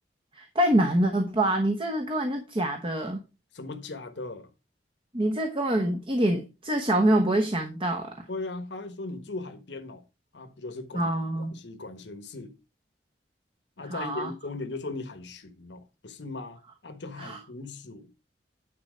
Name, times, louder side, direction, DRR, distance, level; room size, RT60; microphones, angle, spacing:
voice 1, 0.4-3.2 5.1-8.2 10.9-11.6 13.9-14.3 17.2-17.4, right 1 dB, 30° right, 1.0 m, -25 dB
voice 2, 3.5-4.5 8.3-10.0 10.3-12.5 13.8-18.1, left 3 dB, 90° left, 1.3 m, -38 dB
9.9 x 4.3 x 5.0 m
head